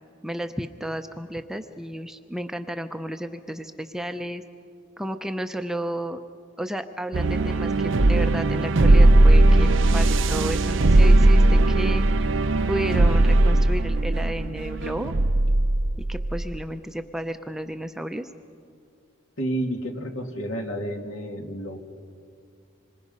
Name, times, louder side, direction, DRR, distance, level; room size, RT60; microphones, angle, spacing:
voice 1, 0.2-4.4 5.0-6.2 6.6-12.3 12.7-15.1 16.1-18.3, equal, ahead, 7 dB, 0.6 m, -32 dB
sound 1, 7.1-16.6, right 2 dB, 65° right, 0.7 m, -18 dB
voice 2, 19.4-21.8, right 1 dB, 70° left, 3 dB, 2.3 m, -30 dB
26.5 x 25.0 x 5.5 m, 2.3 s
head